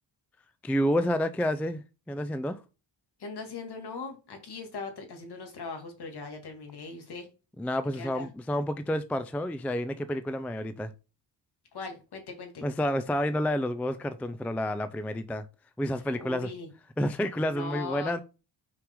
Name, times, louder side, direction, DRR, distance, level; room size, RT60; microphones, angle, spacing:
voice 1, 0.6-2.6 7.6-10.9 12.6-15.5 15.8-16.5 17.0-18.2, left 1 dB, 5° left, 0.3 m, -29 dB
voice 2, 3.2-7.3 7.8-8.3 11.7-12.7 16.2-16.7 17.5-18.1, left 4 dB, 55° left, 2.2 m, -40 dB
5.9 x 4.8 x 3.7 m
wide cardioid pair, 130°, 46 cm